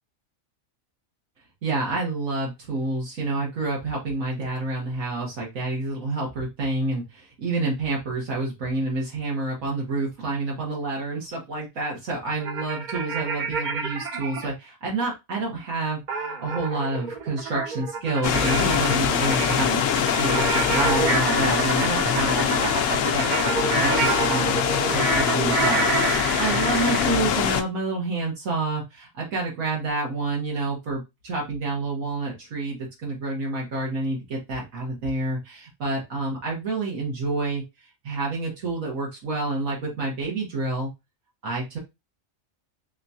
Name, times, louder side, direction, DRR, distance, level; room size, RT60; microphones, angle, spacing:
voice 1, 1.6-19.8 20.1-23.3 23.8-24.6 24.9-37.6 38.0-40.9 41.4-41.8, right 2 dB, 80° right, -3 dB, 1.6 m, -28 dB
sound 1, 12.4-14.5 16.1-27.2, right 4 dB, 50° right, 0.6 m, -28 dB
sound 2, 18.2-27.6, left 8 dB, 75° left, 0.9 m, -23 dB
3.7 x 3.5 x 2.7 m, 0.23 s
omnidirectional pair, 1.4 m